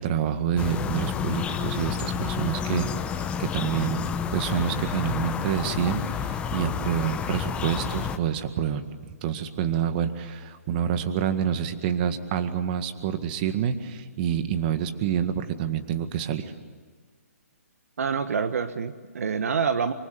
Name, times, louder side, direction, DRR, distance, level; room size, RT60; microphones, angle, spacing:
voice 1, 0.0-2.9 3.4-8.8 9.2-16.5, right 9 dB, 35° right, 9 dB, 1.9 m, -27 dB
sound 1, 0.6-8.2, left 7 dB, 15° left, 1.0 m, -30 dB
voice 2, 18.0-19.9, right 6 dB, 65° right, 11 dB, 1.3 m, -26 dB
24.5 x 24.5 x 9.3 m, 1.5 s
hypercardioid pair, 145°, 8 cm